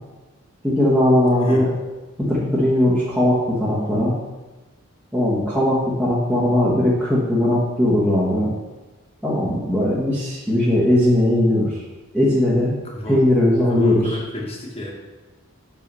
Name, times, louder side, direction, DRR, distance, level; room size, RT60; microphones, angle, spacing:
voice 1, 0.6-1.7 2.2-4.2 5.1-8.5 9.2-11.8 12.1-12.7 13.0-14.2, left 1 dB, 5° right, -10 dB, 1.3 m, -19 dB
voice 2, 1.4-1.7 13.0-13.2 13.7-14.9, left 1 dB, 25° left, -2 dB, 1.5 m, -29 dB
6.8 x 5.5 x 5.5 m, 1.2 s
head